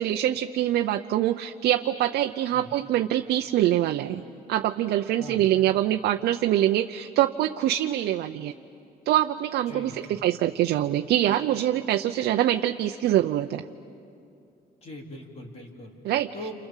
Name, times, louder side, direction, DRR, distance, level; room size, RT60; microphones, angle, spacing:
voice 1, 0.0-4.2 4.5-8.5 9.1-13.6 16.0-16.3, right 12 dB, 80° right, 6 dB, 0.7 m, -24 dB
voice 2, 9.7-10.2 14.8-16.5, left 1 dB, 40° left, 1 dB, 3.9 m, -41 dB
29.5 x 27.5 x 7.4 m, 2.6 s
cardioid pair, 130°, 17 cm